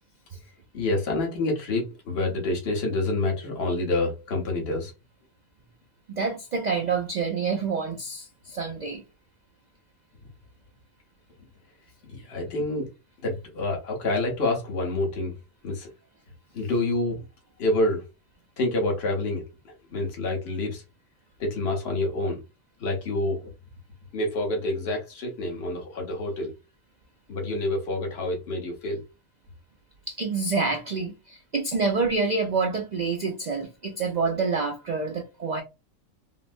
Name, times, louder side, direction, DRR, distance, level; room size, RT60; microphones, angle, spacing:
voice 1, 0.7-4.9 12.1-12.9 13.2-15.3 15.6-15.9 16.5-17.2 17.6-18.0 18.6-19.4 19.9-20.8 21.4-22.4 22.8-23.5 24.1-26.5 27.3-29.0, left 2 dB, 50° left, 1.3 m, -27 dB
voice 2, 6.1-9.0 30.1-35.6, right 4 dB, 80° right, 0.3 m, -27 dB
3.9 x 2.1 x 2.5 m
omnidirectional pair, 1.4 m